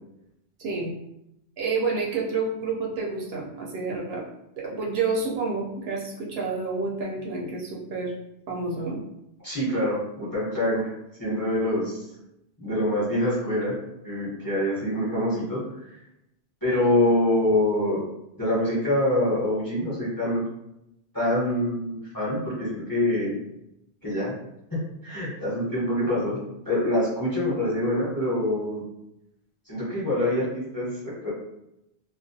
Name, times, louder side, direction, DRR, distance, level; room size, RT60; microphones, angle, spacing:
voice 1, 1.6-4.2 4.6-8.1 8.5-9.0, right 4 dB, 70° right, -2 dB, 0.8 m, -29 dB
voice 2, 9.4-10.9 11.2-12.0 12.6-13.7 14.0-16.0 16.6-18.0 18.4-20.4 21.1-23.3 24.0-24.3 24.7-26.4 26.7-28.8 29.7-31.3, left 1 dB, 20° left, -8 dB, 0.7 m, -25 dB
2.4 x 2.1 x 2.6 m, 0.84 s
omnidirectional pair, 1.1 m